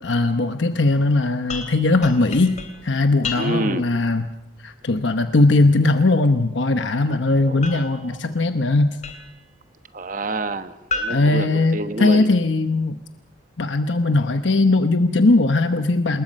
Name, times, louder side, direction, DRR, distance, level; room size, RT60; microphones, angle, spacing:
voice 1, 0.0-2.6 2.8-4.3 4.6-9.0 11.1-13.0 13.6-16.2, left 2 dB, 70° left, 8 dB, 1.0 m, -19 dB
sound 1, 1.5-3.9 7.6-9.5 10.9-12.4, left 3 dB, 40° left, 3.0 m, -34 dB
voice 2, 3.3-3.8 7.5-7.6 9.9-12.3, right 2 dB, 45° right, 10 dB, 1.2 m, -28 dB
27.0 x 21.0 x 5.4 m, 0.87 s
head